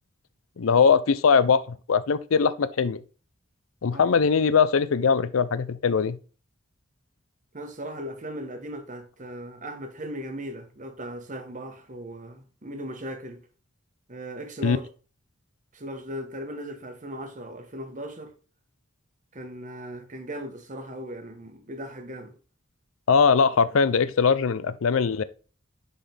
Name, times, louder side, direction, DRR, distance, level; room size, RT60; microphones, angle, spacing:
voice 1, 0.6-3.0 3.8-6.2 14.6-14.8 23.1-25.2, left 5 dB, 90° left, 0.5 m, -21 dB
voice 2, 7.5-13.4 14.1-14.9 15.7-18.3 19.3-22.4, equal, 40° right, 1.2 m, -38 dB
10.5 x 3.9 x 3.4 m
head